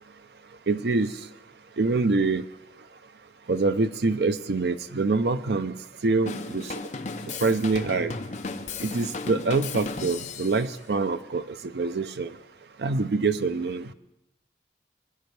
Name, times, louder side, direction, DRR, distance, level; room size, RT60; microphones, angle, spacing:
voice 1, 0.7-1.1 1.8-2.4 3.5-5.7 6.0-6.7 7.4-8.1 8.8-12.3 12.8-13.9, right 3 dB, 70° right, 11 dB, 0.5 m, -25 dB
Drum kit / Drum, 6.3-10.7, left 4 dB, 40° left, 0.6 m, -35 dB
20.5 x 10.5 x 3.3 m, 0.88 s
head